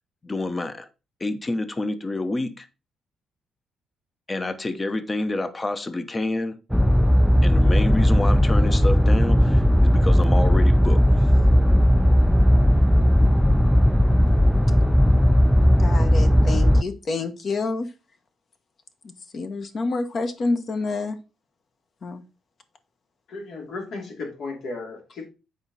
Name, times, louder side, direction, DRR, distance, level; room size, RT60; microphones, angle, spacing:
voice 1, 0.2-0.9 1.2-2.7 4.3-6.6 7.4-11.3, left 2 dB, 25° left, 0.8 m, -28 dB
sound 1, 6.7-16.8, equal, 5° right, 0.3 m, -17 dB
voice 2, 15.8-17.9 19.0-21.2 22.0-22.2, left 3 dB, 50° left, 1.2 m, -28 dB
voice 3, 23.3-25.2, left 3 dB, 70° left, 3.0 m, -35 dB
7.7 x 4.9 x 4.1 m
cardioid pair, 90°, 0 cm